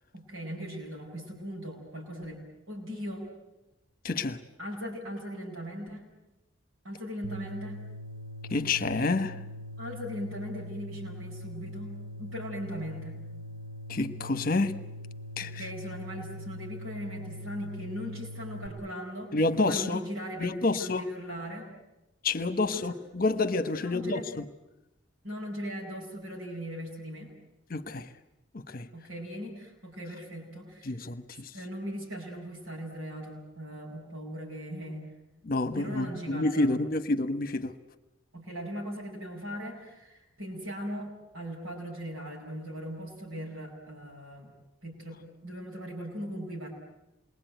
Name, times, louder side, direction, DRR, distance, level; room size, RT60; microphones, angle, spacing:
voice 1, 0.1-3.2 4.6-6.0 6.8-7.8 9.8-11.9 12.2-13.2 15.4-19.3 19.6-21.7 22.7-22.8 23.8-24.3 25.2-27.3 28.9-31.0 31.3-35.1 35.7-36.8 38.3-44.5 44.8-46.7, equal, 80° right, 7.8 m, -39 dB
voice 2, 4.0-4.4 8.5-9.4 13.9-14.8 15.4-15.6 19.3-20.0 20.4-21.0 22.2-24.4 27.7-28.1 28.5-28.9 30.8-31.5 35.4-37.7, left 2 dB, 45° left, 1.2 m, -28 dB
sound 1, 7.2-18.7, left 1 dB, 55° right, 4.5 m, -42 dB
28.0 x 22.0 x 9.2 m
head